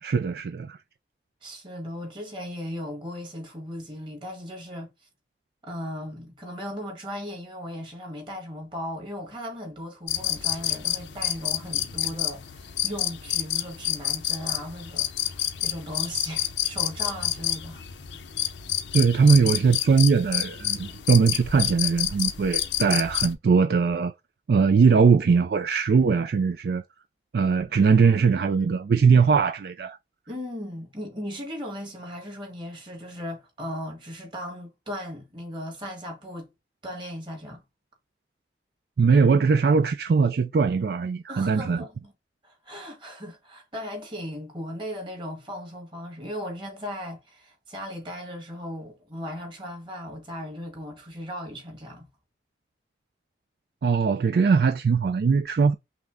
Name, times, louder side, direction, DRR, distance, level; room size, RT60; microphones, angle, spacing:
voice 1, 0.0-0.8 18.9-24.1 24.5-26.8 27.3-30.0 39.0-41.8 53.8-55.7, right 5 dB, 60° right, 0.3 m, -20 dB
voice 2, 1.4-4.9 5.6-17.8 30.3-36.5 36.8-37.6 41.3-42.1 42.4-52.0, equal, 25° right, 1.6 m, -37 dB
sound 1, 10.1-23.3, left 12 dB, 85° left, 0.7 m, -29 dB
5.8 x 2.1 x 3.5 m
head